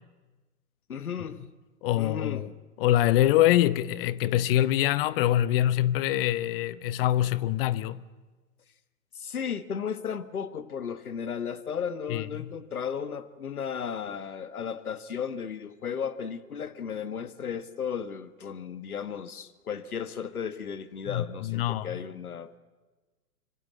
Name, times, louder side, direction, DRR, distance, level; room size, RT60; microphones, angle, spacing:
voice 1, 0.9-1.4 2.0-2.5 9.1-22.6, left 7 dB, 80° left, 1.5 m, -35 dB
voice 2, 1.8-2.5 2.8-8.0 12.1-12.5 21.1-22.0, left 13 dB, 40° left, 0.9 m, -24 dB
25.5 x 25.0 x 8.5 m
figure-of-eight pair, 110°, 43 cm